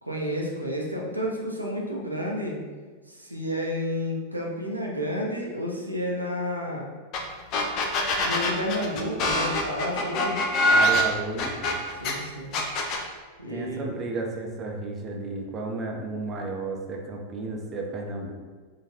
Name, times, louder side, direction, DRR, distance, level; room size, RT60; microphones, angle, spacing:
voice 1, 0.0-2.6 3.1-6.9 8.2-10.4 11.9-12.5 13.4-13.9, equal, 85° right, -2 dB, 0.5 m, -31 dB
sound 1, 7.1-7.2 7.5-12.1 12.5-13.0, left 1 dB, 40° left, 0.5 m, -23 dB
voice 2, 10.7-11.6 13.5-18.3, right 3 dB, 25° right, 0 dB, 0.5 m, -33 dB
3.9 x 2.4 x 2.6 m, 1.4 s
figure-of-eight pair, 90°, 0 cm